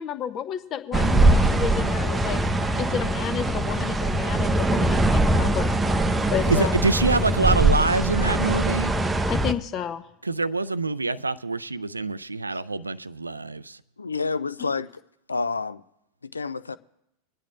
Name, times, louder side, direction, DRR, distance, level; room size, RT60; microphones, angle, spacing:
voice 1, 0.0-2.4 2.8-5.7 6.3-6.7 9.3-10.0, left 9 dB, 30° left, 0.7 m, -31 dB
sound 1, 0.9-9.5, right 2 dB, 10° right, 0.6 m, -22 dB
voice 2, 6.5-8.9 10.2-13.8, right 3 dB, 80° right, 0.4 m, -25 dB
voice 3, 14.0-14.9 15.3-15.8 16.3-16.8, left 4 dB, 75° left, 0.3 m, -28 dB
25.5 x 10.0 x 2.5 m
figure-of-eight pair, 90°, 0 cm